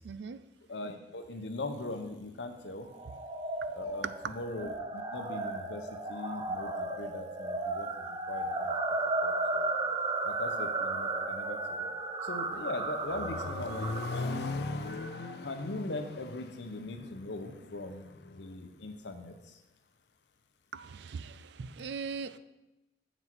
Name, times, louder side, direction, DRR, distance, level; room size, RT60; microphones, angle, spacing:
voice 1, 0.0-0.4 4.0-4.3 20.7-22.4, right 5 dB, 75° right, 14 dB, 0.4 m, -39 dB
voice 2, 0.7-2.9 3.7-8.7 9.2-9.7 10.2-11.9 12.2-14.5 15.4-18.1 18.3-19.6, left 2 dB, 80° left, 7 dB, 0.9 m, -40 dB
sound 1, 2.9-15.4, right 2 dB, 25° right, 0.7 m, -35 dB
Accelerating revving vroom, 12.5-18.5, left 3 dB, 60° left, 0.4 m, -39 dB
7.9 x 6.1 x 4.6 m, 1.0 s
head